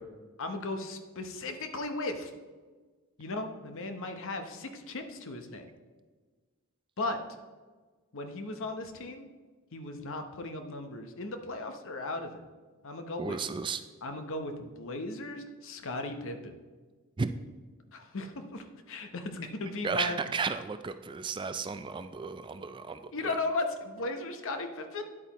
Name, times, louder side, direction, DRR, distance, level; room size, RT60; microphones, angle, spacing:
voice 1, 0.4-2.3 3.2-5.7 7.0-7.2 8.1-9.3 9.7-12.4 12.8-13.4 14.0-16.5 17.9-20.2 23.1-25.1, left 2 dB, 65° left, 7 dB, 0.9 m, -36 dB
voice 2, 13.2-13.8 17.2-17.3 19.8-23.3, right 5 dB, 20° right, 10 dB, 0.3 m, -34 dB
10.0 x 8.3 x 3.0 m, 1.4 s
head